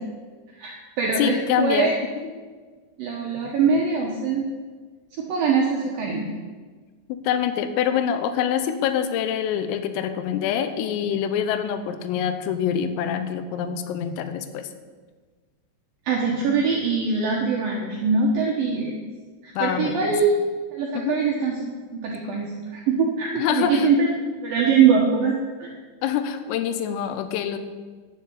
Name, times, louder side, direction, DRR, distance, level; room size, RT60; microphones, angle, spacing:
voice 1, 0.6-1.9 3.0-4.5 5.2-6.3 16.1-19.0 19.4-21.6 21.9-25.7, right 5 dB, 75° right, -2 dB, 2.1 m, -22 dB
voice 2, 1.2-1.9 7.1-14.7 19.6-20.1 20.9-21.2 23.4-23.9 26.0-27.6, left 9 dB, 85° left, 9 dB, 3.5 m, -25 dB
10.5 x 6.7 x 8.4 m, 1.4 s
omnidirectional pair, 5.8 m